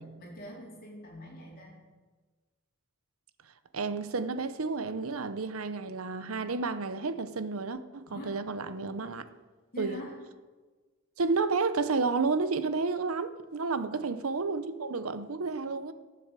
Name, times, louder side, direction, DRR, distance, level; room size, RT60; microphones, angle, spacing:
voice 1, 0.0-1.7 8.1-8.4 9.7-10.2 13.8-14.1, equal, 45° left, 4.2 m, -44 dB
voice 2, 3.7-9.2 9.8-10.0 11.2-15.9, right 4 dB, 75° right, 0.8 m, -31 dB
13.5 x 7.7 x 7.5 m
head